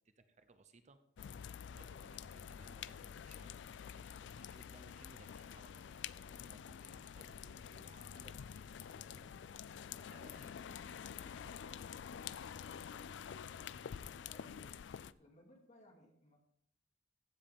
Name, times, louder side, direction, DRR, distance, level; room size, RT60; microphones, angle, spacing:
voice 1, 0.1-9.3 9.8-11.9, right 3 dB, 40° right, 10 dB, 0.7 m, -64 dB
sound 1, 1.2-15.1, left 8 dB, 70° left, 0.3 m, -48 dB
voice 2, 9.8-10.1 12.4-14.9 15.2-16.4, left 1 dB, 40° left, -1 dB, 2.7 m, -65 dB
15.5 x 7.7 x 3.6 m, 0.73 s
head